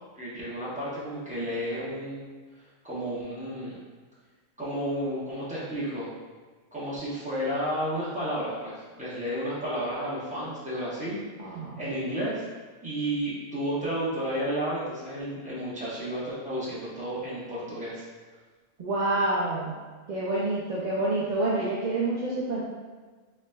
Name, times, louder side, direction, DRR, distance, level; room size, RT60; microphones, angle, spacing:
voice 1, 0.1-2.3 2.6-3.8 4.6-6.1 6.7-11.2 11.8-12.4 12.8-18.0, equal, 5° right, -9 dB, 0.9 m, -32 dB
voice 2, 11.4-11.8 18.8-19.8 20.1-22.6, right 2 dB, 60° right, -7 dB, 0.4 m, -27 dB
3.9 x 3.2 x 2.2 m, 1.4 s
omnidirectional pair, 1.4 m